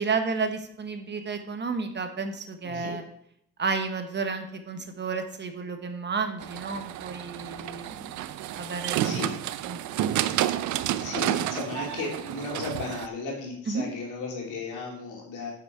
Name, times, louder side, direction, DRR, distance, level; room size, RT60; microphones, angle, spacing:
voice 1, 0.0-3.0 3.6-8.2 8.5-9.3 9.7-9.8 13.7-13.9, right 4 dB, 35° right, 7 dB, 1.2 m, -31 dB
voice 2, 2.6-3.0 9.0-9.3 10.8-15.5, left 3 dB, 90° left, -1 dB, 2.6 m, -35 dB
sound 1, 6.4-13.1, right 12 dB, 75° right, 0.5 m, -30 dB
7.6 x 6.3 x 4.6 m, 0.71 s
cardioid pair, 90°, 30 cm